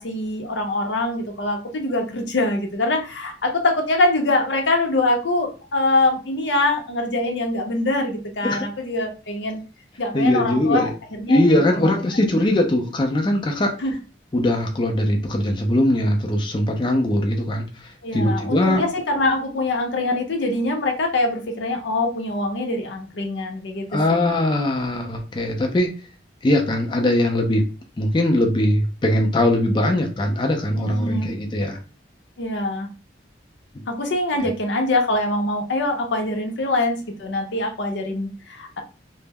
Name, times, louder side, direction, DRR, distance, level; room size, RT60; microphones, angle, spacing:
voice 1, 0.0-9.6 10.0-11.4 11.7-12.5 13.8-13.9 18.0-24.2 30.8-31.3 32.4-32.9 33.9-38.8, left 2 dB, 85° left, 3 dB, 0.6 m, -24 dB
voice 2, 10.1-10.9 11.3-13.7 14.3-18.8 23.9-25.9 26.4-27.6 28.0-31.8, left 1 dB, 25° left, 2 dB, 0.4 m, -21 dB
2.1 x 2.0 x 3.3 m, 0.34 s
head